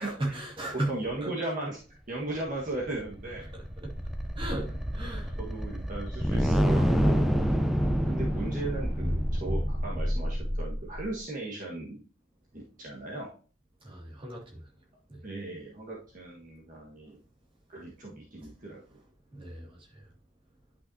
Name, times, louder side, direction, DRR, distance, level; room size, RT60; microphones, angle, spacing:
voice 1, 0.0-1.3 3.5-4.0 4.4-5.4 13.8-14.7 15.1-15.2 17.0-17.1 19.3-20.1, right 1 dB, 25° right, 2.4 m, -37 dB
voice 2, 0.9-3.5 5.4-7.4 8.0-12.0 12.5-13.3 15.2-17.2 17.7-18.8, right 2 dB, 40° right, 1.6 m, -37 dB
sound 1, 2.7-11.1, equal, ahead, 0.6 m, -28 dB
10.5 x 5.9 x 2.8 m
head